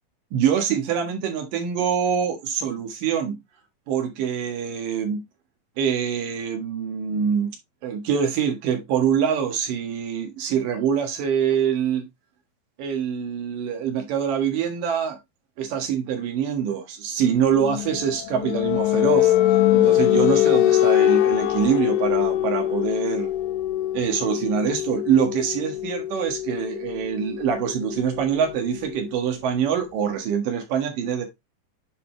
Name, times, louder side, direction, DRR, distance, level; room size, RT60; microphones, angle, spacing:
voice 1, 0.3-3.4 3.9-5.2 5.8-7.5 7.8-12.1 12.8-15.2 15.6-19.3 19.7-23.3 23.9-31.3, right 8 dB, 80° right, 3.2 m, -24 dB
sound 1, 17.6-29.1, left 13 dB, 80° left, 2.0 m, -23 dB
9.8 x 3.9 x 3.2 m
omnidirectional pair, 3.8 m